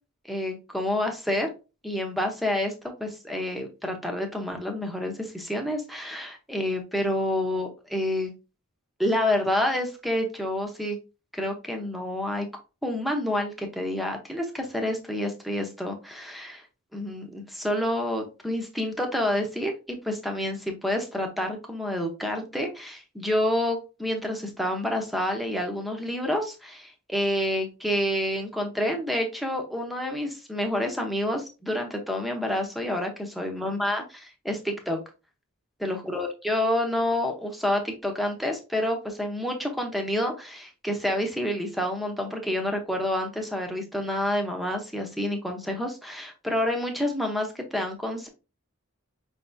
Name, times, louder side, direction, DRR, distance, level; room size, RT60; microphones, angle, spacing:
voice 1, 0.3-1.5 1.8-2.7 3.0-8.3 9.0-11.0 11.3-12.5 12.8-16.6 16.9-35.0 35.8-48.3, left 1 dB, ahead, 3 dB, 0.9 m, -28 dB
5.4 x 3.4 x 2.6 m, 0.29 s
head